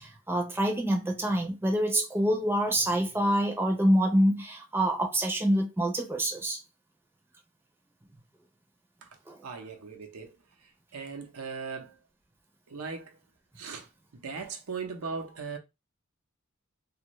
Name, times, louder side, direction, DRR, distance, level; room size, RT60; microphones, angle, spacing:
voice 1, 0.0-6.6 9.3-9.4, right 1 dB, 10° right, 0.6 m, -26 dB
voice 2, 9.4-10.4 10.6-12.0 12.7-13.2 13.6-15.6, right 5 dB, 85° right, 0.7 m, -39 dB
2.6 x 2.4 x 3.0 m
head